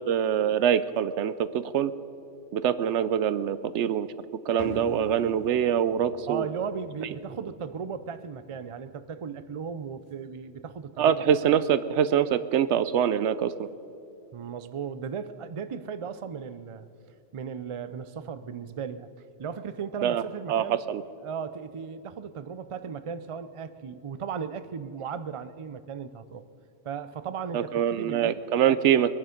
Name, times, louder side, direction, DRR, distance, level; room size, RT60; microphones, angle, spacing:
voice 1, 0.1-1.9 2.5-4.1 4.5-6.5 11.0-13.7 20.0-20.2 20.5-21.0 27.5-29.1, right 9 dB, 70° right, 14 dB, 0.9 m, -24 dB
sound 1, 4.6-11.3, equal, 30° left, 2.9 m, -45 dB
voice 2, 6.3-11.2 14.3-16.9 17.3-19.1 19.4-20.8 21.2-26.5 26.8-28.4, right 6 dB, 55° right, 13 dB, 0.3 m, -36 dB
21.5 x 11.0 x 5.1 m, 2.8 s
omnidirectional pair, 1.3 m